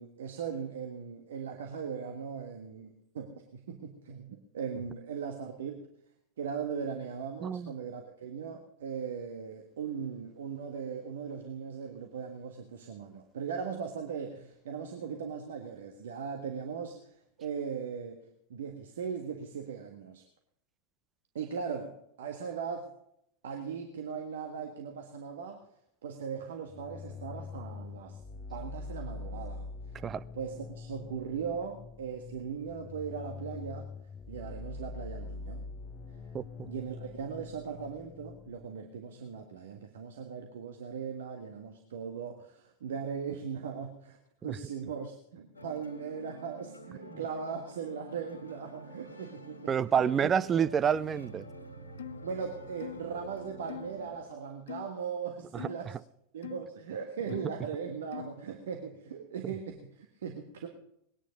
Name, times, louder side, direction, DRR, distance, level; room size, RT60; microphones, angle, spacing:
voice 1, 0.0-5.9 6.4-18.2 18.5-20.2 21.3-22.9 23.4-25.7 26.0-28.2 28.5-29.7 30.3-33.9 34.3-35.6 36.6-44.2 44.4-50.3 52.2-56.0 56.3-60.7, right 6 dB, 60° right, 1.6 m, -39 dB
voice 2, 7.4-7.7 30.0-30.2 36.3-36.7 47.1-47.2 49.7-51.5 55.5-55.7, right 7 dB, 25° right, 0.5 m, -28 dB
sound 1, 26.7-38.6, left 3 dB, 25° left, 0.7 m, -44 dB
sound 2, 45.5-54.1, right 1 dB, 75° left, 1.9 m, -48 dB
sound 3, 52.0-52.3 52.8-53.1 53.7-53.9 54.7-55.0 55.6-55.8 56.4-56.7 57.3-57.6 58.1-58.4, left 10 dB, 60° left, 0.4 m, -42 dB
20.0 x 10.0 x 5.2 m
figure-of-eight pair, 90°, 0 cm